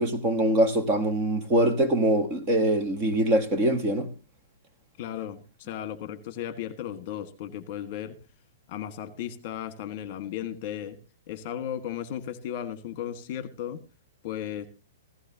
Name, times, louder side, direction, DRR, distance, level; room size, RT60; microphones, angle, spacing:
voice 1, 0.0-4.1, right 1 dB, 20° right, 1.3 m, -23 dB
voice 2, 5.0-8.1 8.7-11.0 11.3-13.8 14.2-14.7, left 10 dB, 35° left, 1.6 m, -35 dB
16.0 x 14.5 x 2.9 m
hypercardioid pair, 165°, 0 cm